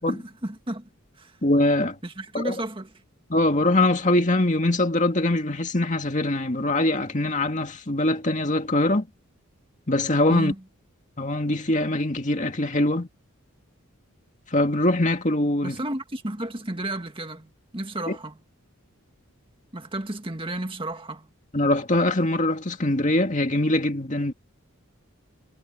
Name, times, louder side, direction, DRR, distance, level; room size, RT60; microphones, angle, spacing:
voice 1, 0.1-0.9 1.2-1.4 2.0-2.9 10.3-10.6 15.6-18.4 19.7-21.3, right 1 dB, 25° right, 1.9 m, -32 dB
voice 2, 1.4-2.0 2.3-2.5 3.3-9.1 9.9-10.5 11.2-13.1 14.5-15.7 18.1-18.2 21.5-24.3, left 1 dB, 35° left, 2.2 m, -22 dB
head